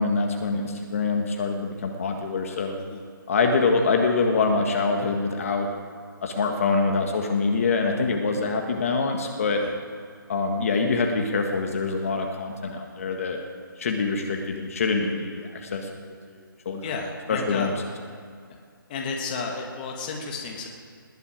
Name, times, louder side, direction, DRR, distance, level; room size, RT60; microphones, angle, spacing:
voice 1, 0.0-2.8 3.3-5.7 6.2-9.6 10.3-13.4 13.8-16.8 17.3-17.7, left 4 dB, 40° left, 3 dB, 1.7 m, -25 dB
voice 2, 16.8-17.7 18.9-20.7, left 4 dB, 25° left, 1 dB, 1.7 m, -32 dB
20.0 x 6.9 x 8.7 m, 2.2 s
figure-of-eight pair, 160°, 12 cm